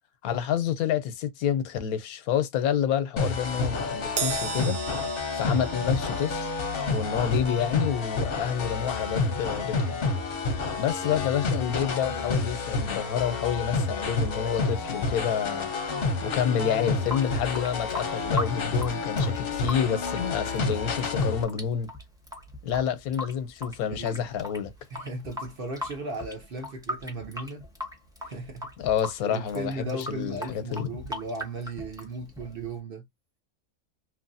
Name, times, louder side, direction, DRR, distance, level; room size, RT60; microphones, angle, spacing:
voice 1, 0.2-4.8 5.3-6.5 6.9-10.0 10.8-15.7 16.2-21.9 22.6-24.7 28.8-30.9, left 8 dB, 90° left, 1.1 m, -28 dB
sound 1, 3.2-21.4, left 3 dB, 50° left, 0.8 m, -29 dB
Crash cymbal, 4.2-10.8 11.1-11.4 12.4-12.5, right 8 dB, 80° right, 1.1 m, -39 dB
Water tap faucet / Sink (filling or washing) / Drip, 16.8-32.8, left 1 dB, 5° right, 0.6 m, -39 dB
voice 2, 20.4-20.8 23.8-24.3 24.9-27.6 28.2-28.7 29.2-33.1, right 2 dB, 50° right, 0.8 m, -36 dB
3.0 x 2.6 x 2.6 m
omnidirectional pair, 1.5 m